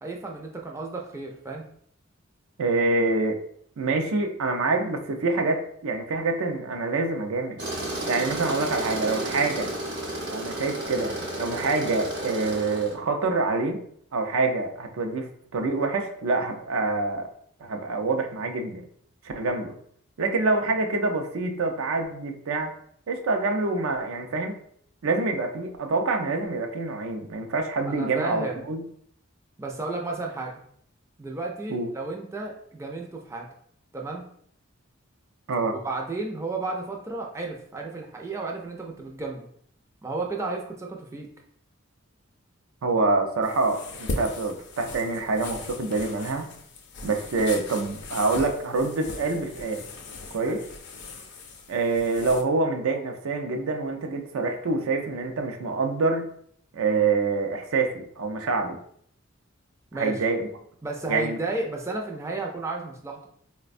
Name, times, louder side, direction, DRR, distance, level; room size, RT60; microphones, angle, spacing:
voice 1, 0.0-1.6 27.8-28.7 29.6-30.6 31.2-33.5 33.9-34.3 35.7-39.5 40.0-41.3 50.3-50.6 59.9-60.2 60.8-63.3, right 3 dB, 15° right, 0 dB, 0.4 m, -33 dB
voice 2, 2.6-3.4 3.8-7.6 8.1-9.7 10.3-13.8 14.1-15.3 15.5-17.3 17.6-18.8 19.2-19.8 20.2-22.7 23.1-24.6 25.0-28.8 31.7-31.9 35.5-35.8 42.8-46.5 47.0-49.9 50.3-50.6 51.7-56.3 56.7-58.8 59.9-60.5 61.1-61.4, right 3 dB, 80° right, 4 dB, 0.5 m, -26 dB
Tools, 7.6-12.9, right 1 dB, 55° right, 0.8 m, -32 dB
sound 1, 43.4-52.4, left 3 dB, 55° left, 0.4 m, -38 dB
4.1 x 2.1 x 2.5 m, 0.64 s
head